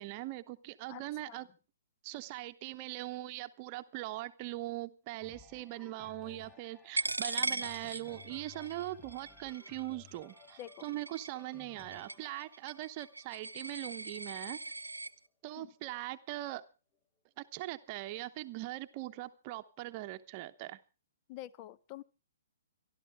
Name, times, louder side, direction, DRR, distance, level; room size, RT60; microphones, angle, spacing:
voice 1, 0.0-1.5 2.0-14.6 15.4-16.6 17.4-20.8, right 17 dB, 35° right, 9 dB, 0.9 m, -41 dB
voice 2, 0.9-1.4 10.6-10.8 15.6-15.7 21.3-22.0, left 13 dB, 30° left, 19 dB, 0.7 m, -47 dB
sound 1, 5.2-15.0 15.6-15.7, left 7 dB, 10° left, 1.1 m, -58 dB
Coin (dropping), 7.0-15.1, right 3 dB, 85° right, 0.7 m, -40 dB
26.5 x 12.0 x 3.5 m, 0.33 s
figure-of-eight pair, 125°, 0 cm